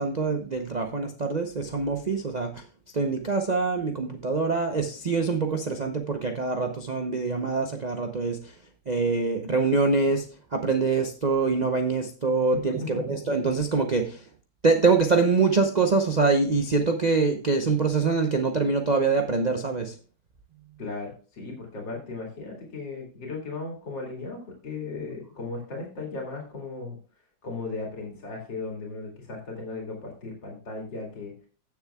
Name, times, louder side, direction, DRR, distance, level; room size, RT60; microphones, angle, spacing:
voice 1, 0.0-2.6 2.9-8.5 8.9-10.3 10.5-14.3 14.6-20.0, right 4 dB, 75° right, 4 dB, 0.4 m, -24 dB
voice 2, 12.5-13.0 20.8-24.4 24.6-27.0 27.4-31.3, left 3 dB, 70° left, -1 dB, 3.0 m, -36 dB
15.5 x 7.0 x 2.3 m, 0.38 s
omnidirectional pair, 2.0 m